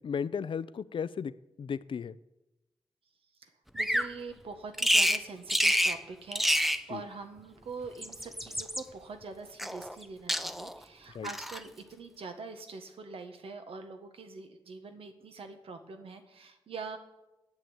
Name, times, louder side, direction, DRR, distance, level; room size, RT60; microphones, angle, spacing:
voice 1, 0.0-1.3 1.6-2.2 6.9-7.0 11.1-11.3, left 6 dB, 65° left, 17 dB, 0.6 m, -34 dB
voice 2, 3.4-17.0, right 4 dB, 80° right, 7 dB, 1.6 m, -44 dB
Bird vocalization bird call bird song, 3.8-4.1 4.8-5.2 5.5-6.0 6.3-6.8 7.8-8.8 9.6-10.0 10.3-10.8 11.2-11.6, equal, ahead, 0.6 m, -28 dB
10.5 x 8.5 x 9.3 m, 0.96 s
wide cardioid pair, 100°, 9 cm